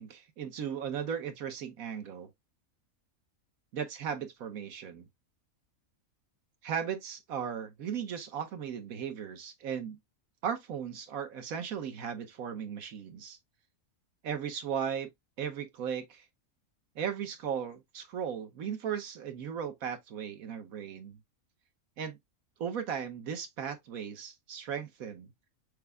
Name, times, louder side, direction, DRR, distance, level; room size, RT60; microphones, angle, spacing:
voice 1, 0.0-2.3 3.7-5.0 6.6-10.0 10.4-13.4 14.2-15.1 15.4-16.2 17.0-21.2 22.0-22.2 22.6-25.3, right 8 dB, 80° right, 1.4 m, -36 dB
6.6 x 2.2 x 3.4 m
omnidirectional pair, 1.5 m